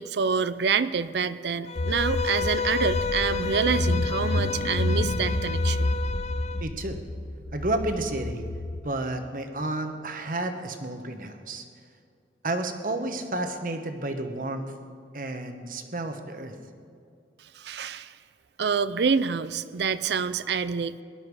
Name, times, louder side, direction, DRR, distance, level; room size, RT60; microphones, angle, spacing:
voice 1, 0.0-5.9 17.6-18.1 18.6-21.0, right 6 dB, 75° right, 14 dB, 0.5 m, -27 dB
Bowed string instrument, 1.7-6.6, left 5 dB, 35° left, 0.3 m, -31 dB
Car / Engine, 1.8-8.8, left 2 dB, 80° left, 0.9 m, -29 dB
voice 2, 6.6-7.0 7.5-8.4 8.8-11.6 12.4-14.7 15.1-16.6, right 2 dB, 50° right, 7 dB, 1.2 m, -31 dB
19.0 x 12.0 x 4.8 m, 2.3 s
head